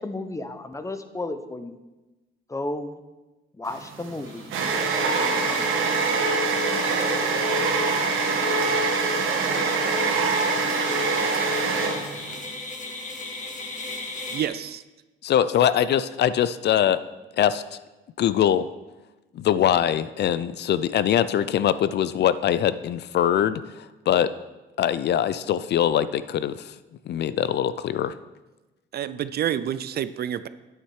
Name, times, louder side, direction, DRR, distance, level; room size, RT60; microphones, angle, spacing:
voice 1, 0.0-1.8 2.5-3.0 3.6-4.5 5.0-6.3, left 2 dB, 15° left, 9 dB, 0.7 m, -34 dB
sound 1, 3.7-12.4, right 4 dB, 80° right, 1.4 m, -24 dB
sound 2, 4.2-14.5, left 2 dB, 40° left, 1.6 m, -40 dB
voice 2, 14.3-14.8 28.9-30.5, right 10 dB, 55° right, 14 dB, 0.4 m, -28 dB
voice 3, 15.2-17.0 17.4-17.6 18.2-18.7 19.4-24.3 24.8-26.7 27.1-28.1, left 10 dB, 60° left, 15 dB, 0.4 m, -22 dB
8.9 x 6.4 x 4.8 m, 1.1 s
cardioid pair, 90°, 20 cm